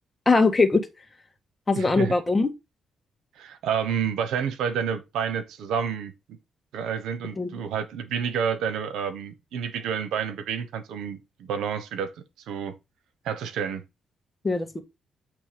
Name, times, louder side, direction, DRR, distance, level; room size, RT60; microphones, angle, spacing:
voice 1, 0.2-0.8 1.7-2.5 7.4-7.5 14.4-14.8, left 3 dB, 25° left, 1.7 m, -21 dB
voice 2, 1.7-2.1 3.4-6.1 6.7-12.1 12.5-12.7 13.2-13.8, right 7 dB, 85° right, 1.1 m, -29 dB
8.4 x 3.3 x 5.2 m
cardioid pair, 70°, 0 cm